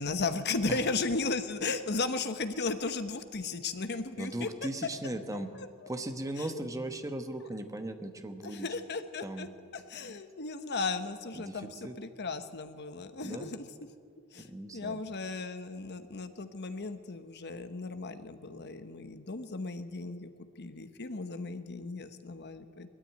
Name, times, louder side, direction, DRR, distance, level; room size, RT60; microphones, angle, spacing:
voice 1, 0.0-4.5 5.3-5.9 6.4-6.5 8.4-9.5 9.7-13.6 14.3-14.5 14.7-20.3 20.6-22.9, left 3 dB, 50° left, 9 dB, 1.1 m, -35 dB
voice 2, 4.2-8.7 9.2-9.5 11.3-12.0 13.2-13.5 14.4-15.0, right 1 dB, 15° right, 7 dB, 1.2 m, -38 dB
20.0 x 14.0 x 9.3 m, 2.2 s
head